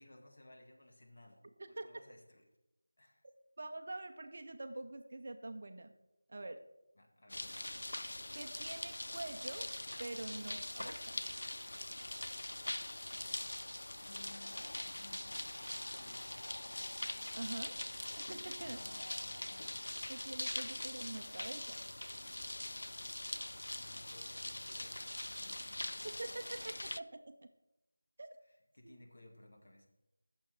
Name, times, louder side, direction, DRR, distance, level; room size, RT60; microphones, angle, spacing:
voice 1, 0.0-2.4 3.0-3.2 7.0-7.7 14.0-16.5 18.6-19.8 23.7-26.3 28.4-29.9, left 1 dB, 40° left, 2 dB, 1.7 m, -59 dB
voice 2, 3.6-6.0 6.3-6.6 8.3-9.7 10.0-11.2 17.3-17.7 18.2-18.8 20.1-21.8 26.0-27.5 28.2-28.3 28.8-28.9, right 2 dB, 40° right, 7 dB, 0.6 m, -45 dB
sound 1, 7.3-27.0, left 1 dB, 75° left, 0.4 m, -43 dB
9.7 x 7.1 x 5.6 m, 0.94 s
figure-of-eight pair, 180°, 0 cm